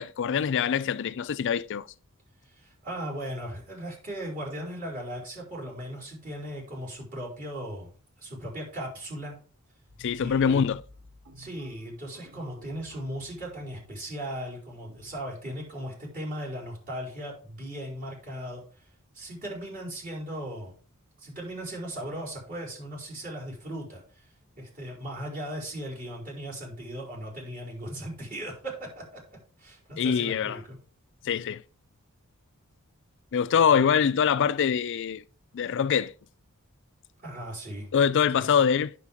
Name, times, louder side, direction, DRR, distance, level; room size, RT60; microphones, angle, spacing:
voice 1, 0.0-1.9 10.0-10.8 30.0-30.6 31.3-31.6 33.3-35.2 35.5-36.1 37.9-38.9, left 7 dB, 55° left, 0.4 m, -24 dB
voice 2, 2.5-7.9 8.2-9.4 10.2-10.6 11.4-18.6 19.1-20.7 21.2-24.0 24.6-29.2 29.6-30.8 33.7-33.8 37.2-37.9 38.3-38.6, right 1 dB, 40° right, 4.6 m, -37 dB
sound 1, 9.9-15.3, equal, 70° right, 2.0 m, -53 dB
9.7 x 6.4 x 3.6 m
head